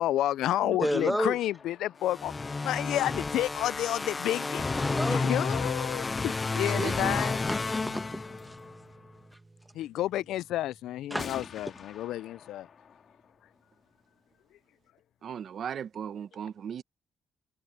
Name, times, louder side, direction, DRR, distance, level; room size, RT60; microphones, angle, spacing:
voice 1, 0.0-2.3 2.6-4.6 5.1-7.4 9.7-12.7, left 13 dB, 85° left, 0.3 m, -30 dB
voice 2, 0.8-1.4 4.8-5.3 5.9-6.1 7.5-8.6 11.1-11.5, equal, ahead, 1.3 m, -32 dB
sound 1, 1.2-3.9 6.5-6.6 7.1-7.2 7.6-7.7 8.0-8.6 9.9-10.0 11.2-14.7, left 7 dB, 55° left, 2.8 m, -50 dB
sound 2, 2.1-8.7, left 3 dB, 25° left, 0.5 m, -31 dB
voice 3, 6.6-7.4 15.2-16.8, right 8 dB, 60° right, 1.2 m, -37 dB
Acoustic guitar / Strum, 6.8-11.8, right 2 dB, 20° right, 6.7 m, -49 dB
cardioid pair, 90°, 0 cm